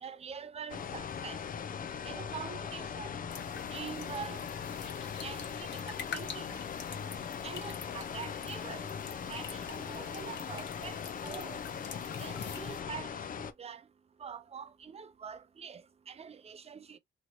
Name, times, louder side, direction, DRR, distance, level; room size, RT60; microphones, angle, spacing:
voice 1, 0.0-1.4 2.0-3.2 3.7-4.5 5.2-6.6 7.4-8.9 9.3-11.6 12.2-13.8 14.2-17.0, right 7 dB, 30° right, 0.5 m, -45 dB
sound 1, 0.7-13.5, left 7 dB, 45° left, 0.6 m, -40 dB
sound 2, 3.3-12.8, left 6 dB, 65° left, 1.3 m, -47 dB
3.1 x 2.8 x 2.8 m
cardioid pair, 90°, 20 cm